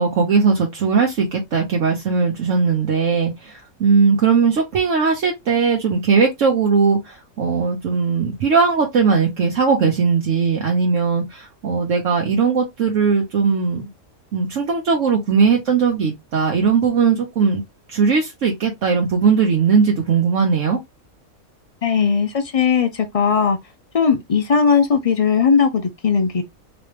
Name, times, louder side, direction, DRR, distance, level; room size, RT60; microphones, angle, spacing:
voice 1, 0.0-13.8 14.3-17.6 17.9-20.8, right 5 dB, 65° right, 1.2 m, -18 dB
voice 2, 21.8-23.6 23.9-26.4, left 6 dB, 65° left, 0.3 m, -18 dB
4.0 x 3.1 x 3.2 m
omnidirectional pair, 1.4 m